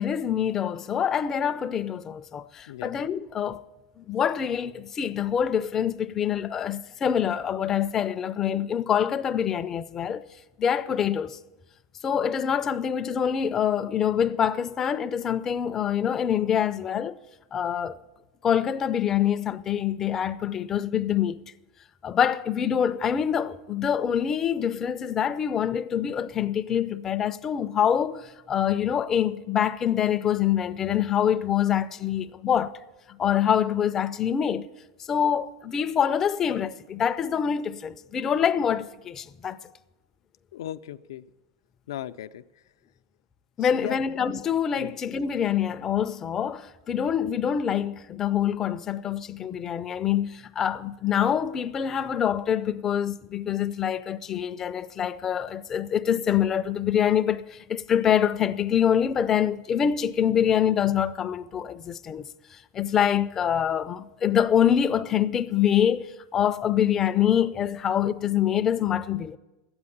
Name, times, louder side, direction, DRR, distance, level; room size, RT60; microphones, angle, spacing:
voice 1, 0.0-3.6 4.0-10.3 10.6-11.4 12.0-17.2 17.5-18.0 18.4-21.4 22.0-32.7 33.1-34.7 35.1-39.6 43.6-62.2 62.5-69.4, left 9 dB, 20° left, 0.4 m, -25 dB
voice 2, 40.5-41.2 41.9-42.4 43.6-44.1 44.7-44.9, left 12 dB, 90° left, 0.5 m, -37 dB
12.5 x 8.7 x 8.6 m
supercardioid pair, 165°, 2 cm